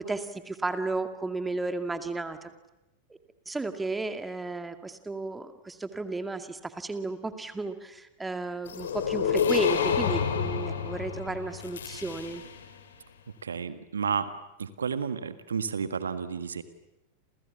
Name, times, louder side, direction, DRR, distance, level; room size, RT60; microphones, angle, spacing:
voice 1, 0.0-2.5 3.1-3.2 3.5-12.4, right 3 dB, 10° right, 8 dB, 2.3 m, -33 dB
sound 1, 8.7-12.7, left 7 dB, 65° left, 3.3 m, -29 dB
voice 2, 13.4-14.3 14.6-16.6, right 6 dB, 70° right, 12 dB, 1.6 m, -31 dB
30.0 x 28.0 x 7.1 m, 0.92 s
figure-of-eight pair, 90°, 0 cm